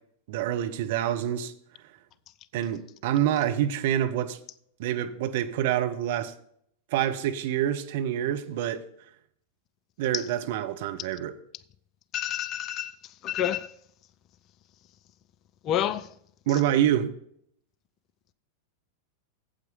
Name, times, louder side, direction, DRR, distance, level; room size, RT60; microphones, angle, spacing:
voice 1, 0.3-1.5 2.5-4.4 4.8-6.3 6.9-8.8 10.0-11.3 16.5-17.1, right 11 dB, 50° right, 0.8 m, -27 dB
voice 2, 12.1-13.0 13.2-13.7 15.6-16.2 16.5-16.6, left 11 dB, 35° left, 0.4 m, -29 dB
8.8 x 7.9 x 5.3 m
figure-of-eight pair, 90°, 0 cm